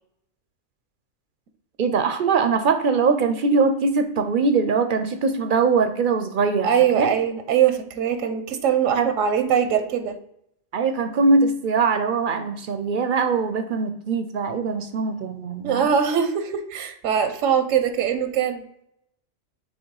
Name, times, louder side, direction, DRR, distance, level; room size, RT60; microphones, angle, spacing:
voice 1, 1.8-6.7 6.9-7.1 9.0-9.1 9.4-9.5 10.7-15.9, right 4 dB, 55° right, 8 dB, 0.6 m, -22 dB
voice 2, 6.6-10.2 15.6-18.6, right 8 dB, 85° right, 9 dB, 1.0 m, -22 dB
6.5 x 3.3 x 4.6 m, 0.75 s
omnidirectional pair, 1.3 m